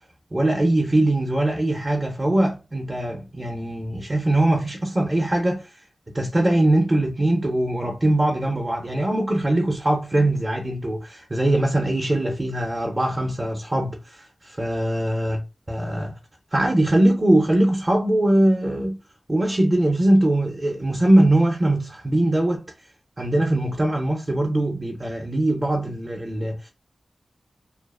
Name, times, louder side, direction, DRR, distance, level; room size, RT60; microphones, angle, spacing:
voice 1, 0.3-5.7 6.1-15.4 15.7-16.2 16.5-19.0 19.3-22.6 23.2-26.7, right 1 dB, 25° right, 0.6 m, -21 dB
2.5 x 2.3 x 2.3 m
wide cardioid pair, 115°, 0 cm